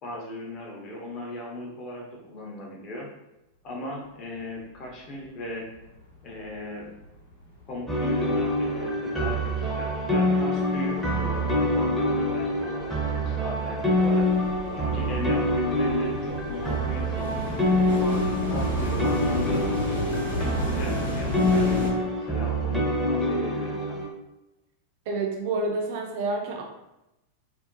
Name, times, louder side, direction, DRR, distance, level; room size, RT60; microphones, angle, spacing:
voice 1, 0.0-3.1 3.6-5.7 6.2-6.9 7.7-14.3 14.7-17.4 17.9-19.8 20.3-24.0, left 1 dB, 35° left, -2 dB, 0.8 m, -38 dB
sound 1, 5.2-5.3 5.6-6.6 6.9-21.9, left 2 dB, 75° left, 0.8 m, -34 dB
sound 2, 7.9-24.1, left 1 dB, ahead, 0.6 m, -26 dB
voice 2, 25.1-26.6, right 3 dB, 50° right, 1 dB, 0.5 m, -28 dB
2.6 x 2.1 x 2.5 m, 0.93 s
figure-of-eight pair, 90°, 0 cm